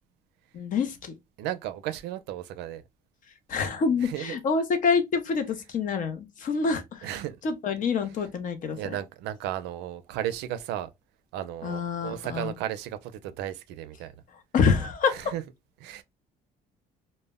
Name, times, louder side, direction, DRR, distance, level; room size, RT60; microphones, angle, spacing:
voice 1, 0.5-1.1 3.5-7.1 7.4-8.8 11.6-12.5 14.5-15.2, left 5 dB, 50° left, 0.5 m, -26 dB
voice 2, 1.4-2.8 4.0-4.4 7.0-7.4 8.7-10.9 11.3-14.1 15.1-15.4 15.8-16.0, right 12 dB, 90° right, 0.4 m, -34 dB
2.1 x 2.0 x 3.4 m
cardioid pair, 110°, 17 cm